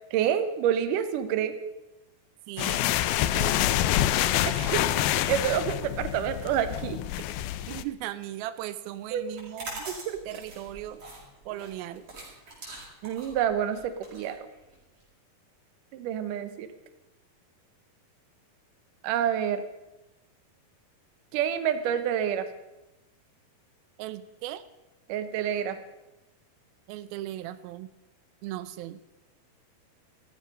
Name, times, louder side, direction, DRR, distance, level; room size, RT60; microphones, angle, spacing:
voice 1, 0.1-1.5 4.5-4.8 5.3-7.0 9.1-9.2 9.9-10.2 13.0-14.4 15.9-16.7 19.0-19.6 21.3-22.5 25.1-25.8, right 9 dB, 70° right, 10 dB, 2.5 m, -28 dB
voice 2, 2.5-3.9 7.7-9.9 10.3-11.0 11.5-12.1 24.0-24.6 26.9-27.9 28.4-29.0, right 14 dB, 90° right, 13 dB, 2.5 m, -38 dB
sound 1, 2.6-7.8, left 13 dB, 85° left, 2.5 m, -27 dB
sound 2, 9.3-15.0, right 2 dB, 40° right, 5.5 m, -43 dB
15.0 x 14.0 x 5.4 m, 1.0 s
omnidirectional pair, 4.2 m